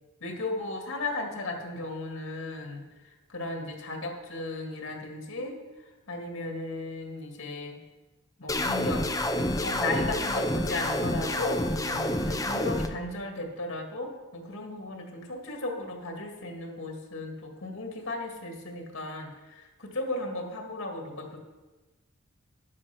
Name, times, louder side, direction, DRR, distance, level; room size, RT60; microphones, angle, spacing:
voice 1, 0.2-2.8 3.3-5.6 6.1-7.7 8.4-9.0 9.3-11.6 11.9-21.4, left 2 dB, 70° left, 1 dB, 2.3 m, -35 dB
sound 1, 8.5-12.9, left 1 dB, 15° left, 0.7 m, -28 dB
11.0 x 7.8 x 5.9 m, 1.2 s
head